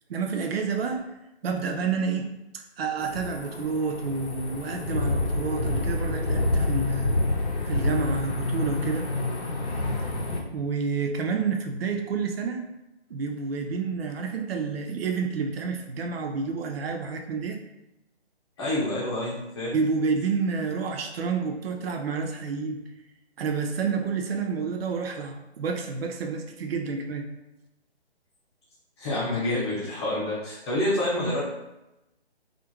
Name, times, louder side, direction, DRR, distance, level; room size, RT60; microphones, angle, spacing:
voice 1, 0.1-1.1 1.4-2.3 2.5-7.1 7.6-9.1 10.5-12.6 13.1-17.6 19.7-22.8 23.4-27.3, right 5 dB, 65° right, 3 dB, 0.5 m, -29 dB
sound 1, 3.0-10.4, left 2 dB, 85° left, 0.7 m, -28 dB
voice 2, 18.6-19.8 29.0-31.4, left 1 dB, 25° left, -7 dB, 0.8 m, -27 dB
2.4 x 2.0 x 2.9 m, 0.94 s
figure-of-eight pair, 150°, 33 cm